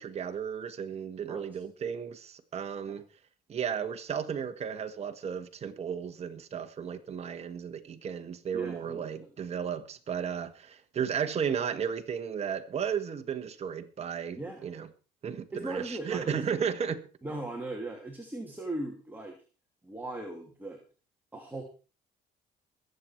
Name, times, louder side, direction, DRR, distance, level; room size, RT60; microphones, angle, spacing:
voice 1, 0.0-3.0 3.5-14.9 15.2-17.0, right 7 dB, 40° right, 1.6 m, -34 dB
voice 2, 8.5-9.3 14.4-14.6 15.5-16.4 17.2-19.4 19.8-20.8 21.3-21.6, right 2 dB, 10° right, 2.8 m, -38 dB
22.0 x 8.0 x 4.6 m
cardioid pair, 110°, 17 cm